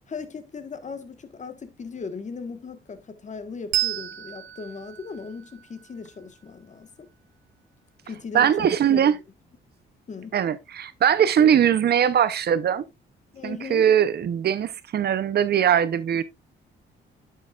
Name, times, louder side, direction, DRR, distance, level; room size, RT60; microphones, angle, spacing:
voice 1, 0.0-7.1 8.0-9.0 10.1-10.4 13.3-13.9, left 5 dB, 35° left, 1.4 m, -38 dB
Bell, 3.7-6.8, right 15 dB, 90° right, 0.9 m, -32 dB
voice 2, 8.3-9.1 10.3-12.9 13.4-16.2, right 9 dB, 55° right, 0.7 m, -21 dB
9.9 x 6.5 x 2.4 m
cardioid pair, 90°, 20 cm